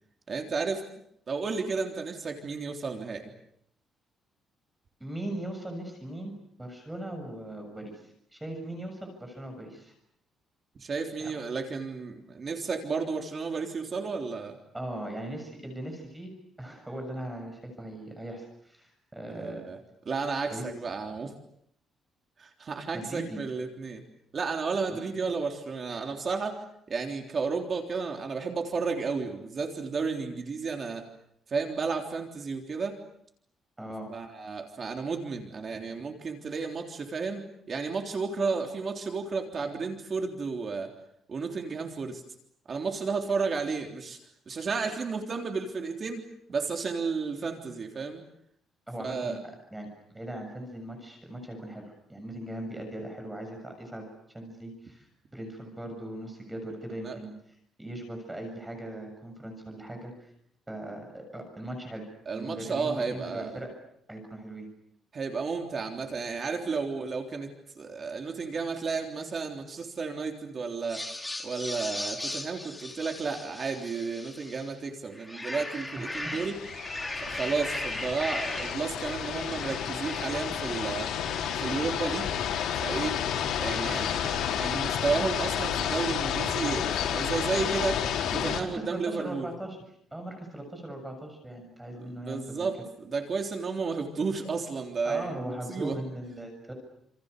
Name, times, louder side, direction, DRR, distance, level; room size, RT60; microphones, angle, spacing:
voice 1, 0.3-0.8 1.3-3.3 10.8-14.6 19.3-19.8 20.1-21.3 22.4-24.0 24.3-26.6 26.9-31.0 31.5-33.0 34.1-40.9 41.3-42.2 42.7-44.2 44.5-48.2 49.0-49.4 57.0-57.2 62.3-63.6 65.1-71.0 71.4-76.6 77.2-81.1 81.6-82.4 82.8-83.2 83.6-88.0 88.3-89.5 92.1-95.4 95.7-96.0, right 4 dB, 35° right, 3 dB, 3.5 m, -32 dB
voice 2, 5.0-9.9 11.2-11.3 14.7-16.3 16.6-19.6 20.5-20.7 22.9-23.4 24.9-25.0 25.9-26.1 33.8-34.1 48.9-49.4 49.7-54.1 54.3-57.4 57.8-60.3 60.7-63.7 64.1-64.7 76.0-76.4 88.6-89.8 90.1-92.7 95.0-96.7, right 1 dB, 10° right, 3 dB, 7.1 m, -39 dB
sound 1, 70.8-74.7 75.1-83.8, left 1 dB, 10° left, 2.9 m, -39 dB
sound 2, 76.1-88.6, left 9 dB, 85° left, 4.5 m, -31 dB
29.0 x 28.5 x 6.8 m, 0.72 s
cardioid pair, 155°, 0 cm